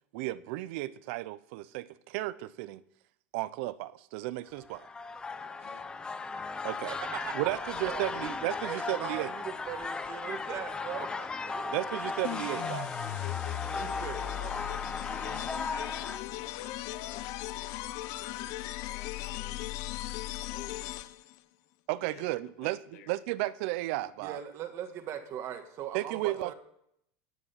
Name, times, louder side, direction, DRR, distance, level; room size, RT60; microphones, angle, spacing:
voice 1, 0.1-2.8 3.3-4.9 6.6-6.9 7.3-9.3 11.7-12.9 21.9-22.8 23.1-24.4 25.9-26.5, right 17 dB, 65° right, 0.5 m, -34 dB
sound 1, 4.6-16.2, left 4 dB, 10° left, 0.5 m, -37 dB
voice 2, 5.6-5.9 12.6-17.8 18.1-19.7 20.4-21.1 22.1-23.1, left 9 dB, 90° left, 1.8 m, -53 dB
voice 3, 6.9-8.0 8.6-12.1 13.7-14.5 24.2-26.5, right 9 dB, 40° right, 1.4 m, -40 dB
sound 2, 12.2-21.4, left 16 dB, 50° left, 0.6 m, -38 dB
11.0 x 8.8 x 5.7 m
supercardioid pair, 155°, 7 cm